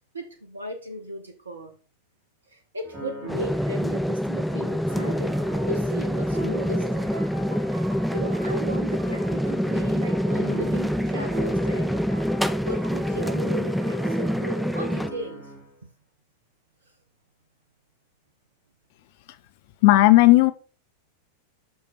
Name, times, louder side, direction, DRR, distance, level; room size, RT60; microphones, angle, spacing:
voice 1, 0.1-1.7 2.5-5.3 5.7-7.2 8.1-12.0 12.6-15.5, right 1 dB, 75° right, 1.1 m, -36 dB
sound 1, 2.8-4.1 4.5-15.7, right 2 dB, 30° right, 3.2 m, -38 dB
sound 2, 3.3-15.1, equal, ahead, 0.4 m, -26 dB
voice 2, 19.8-20.5, left 17 dB, 50° left, 0.6 m, -14 dB
6.0 x 5.4 x 4.2 m
figure-of-eight pair, 90°, 0 cm